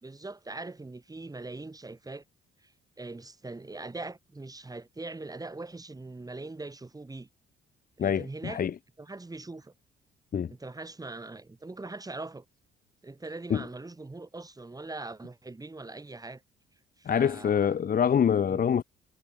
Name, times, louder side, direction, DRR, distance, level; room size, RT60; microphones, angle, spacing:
voice 1, 0.0-2.2 3.0-7.3 8.0-8.6 9.0-9.7 10.5-12.4 13.0-16.4 17.0-17.7 18.5-18.6, right 2 dB, 20° right, 4.1 m, -41 dB
voice 2, 8.0-8.7 10.3-10.5 13.5-13.6 17.0-18.8, left 8 dB, 45° left, 1.1 m, -25 dB
cardioid pair, 90°, 20 cm